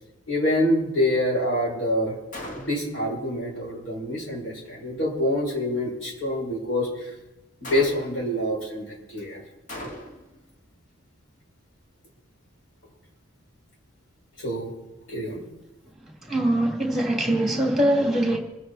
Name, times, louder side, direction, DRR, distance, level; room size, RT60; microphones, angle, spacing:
voice 1, 0.3-2.2 2.5-7.1 7.6-9.4 14.4-14.7 15.1-15.4, left 1 dB, 65° left, 7.4 m, -26 dB
Gunshot gunfire, 2.3-3.0 7.6-8.3 9.7-10.4, left 1 dB, 40° left, 2.2 m, -38 dB
voice 2, 16.2-18.4, right 1 dB, ahead, 3.0 m, -22 dB
27.0 x 10.0 x 4.4 m
head